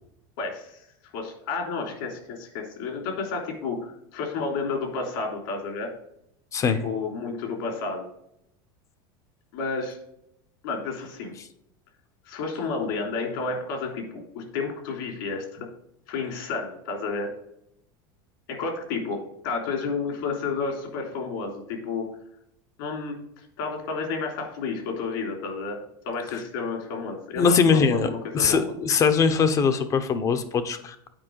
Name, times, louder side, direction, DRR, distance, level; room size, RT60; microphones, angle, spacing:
voice 1, 0.4-0.8 1.1-5.9 6.8-8.1 9.5-10.0 10.6-11.3 12.3-15.4 16.1-17.3 18.5-22.1 22.8-25.8 26.0-28.7, left 4 dB, 75° left, 1 dB, 3.3 m, -31 dB
voice 2, 27.4-31.1, left 5 dB, 30° left, 11 dB, 0.8 m, -22 dB
8.9 x 4.8 x 4.7 m, 0.75 s
supercardioid pair, 145°, 12 cm